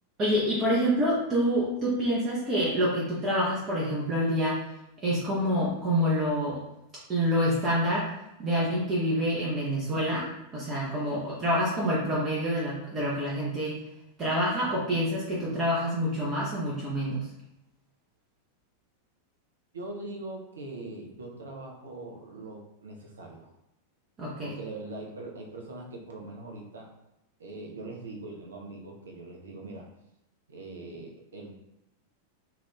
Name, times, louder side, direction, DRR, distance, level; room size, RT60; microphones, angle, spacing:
voice 1, 0.2-4.6 5.0-6.6 7.1-8.1 8.4-13.8 14.2-17.3 24.2-24.5, equal, 25° right, -7 dB, 0.6 m, -27 dB
voice 2, 19.7-23.5 24.4-26.9 27.4-29.9 30.5-31.6, right 2 dB, 70° right, 1 dB, 0.5 m, -41 dB
2.4 x 2.3 x 3.4 m, 0.89 s
figure-of-eight pair, 90°, 0 cm